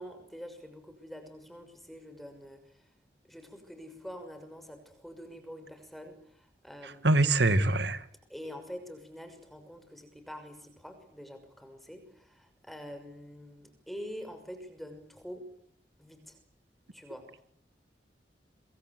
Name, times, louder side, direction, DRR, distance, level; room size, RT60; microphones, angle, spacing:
voice 1, 0.0-2.9 3.3-7.2 8.3-15.5 16.0-16.4 16.9-17.4, equal, ahead, 6.2 m, -46 dB
voice 2, 7.0-8.0, right 2 dB, 75° right, 2.1 m, -24 dB
27.0 x 24.0 x 8.1 m
head